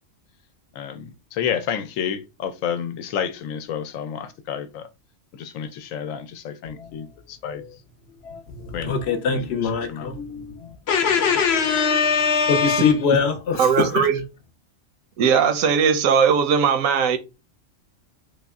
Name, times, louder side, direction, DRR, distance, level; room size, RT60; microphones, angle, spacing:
voice 1, 0.7-4.9 5.3-7.6 8.7-8.9 9.2-10.1, left 8 dB, 85° left, 1.0 m, -30 dB
voice 2, 6.6-7.1 7.5-7.6 8.2-14.1, left 6 dB, 65° left, 0.8 m, -22 dB
voice 3, 13.6-14.2 15.2-17.2, right 7 dB, 85° right, 1.0 m, -18 dB
3.4 x 2.1 x 3.5 m
omnidirectional pair, 1.3 m